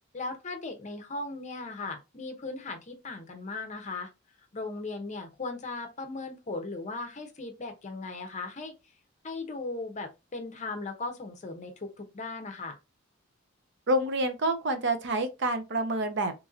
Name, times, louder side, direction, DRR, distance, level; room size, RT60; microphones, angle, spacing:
voice 1, 0.1-4.1 4.5-8.7 9.2-12.8, left 3 dB, 35° left, 0.6 m, -37 dB
voice 2, 13.9-16.3, right 1 dB, 60° right, 0.6 m, -27 dB
3.0 x 2.6 x 2.5 m
head